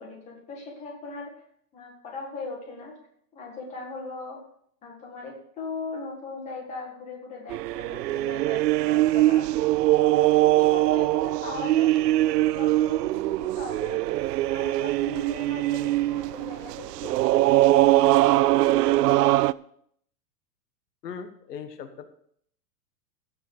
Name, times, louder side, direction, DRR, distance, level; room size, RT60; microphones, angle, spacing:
voice 1, 0.0-1.3 1.7-3.0 3.3-4.4 4.8-9.6 9.9-14.1 14.5-18.9, left 3 dB, 15° left, -1 dB, 1.8 m, -39 dB
sound 1, 7.5-19.5, right 16 dB, 80° right, 0.5 m, -22 dB
voice 2, 21.0-22.2, left 6 dB, 80° left, 8 dB, 1.5 m, -39 dB
15.5 x 5.4 x 6.6 m, 0.67 s
supercardioid pair, 180°, 47 cm